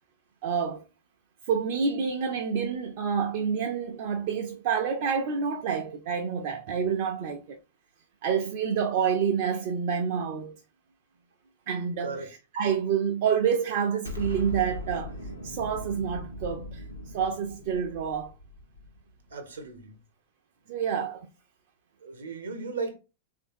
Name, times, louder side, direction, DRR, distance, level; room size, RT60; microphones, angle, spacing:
voice 1, 0.4-0.8 1.5-7.6 8.2-10.6 11.7-15.1 15.4-16.8 17.1-18.3 20.7-21.3, right 7 dB, 50° right, 0.4 m, -28 dB
Explosion, 14.1-19.2, left 1 dB, 85° left, 0.7 m, -39 dB
voice 2, 19.3-20.0 22.0-23.0, right 4 dB, 70° right, 0.7 m, -36 dB
3.3 x 2.6 x 2.6 m
figure-of-eight pair, 90°, 0 cm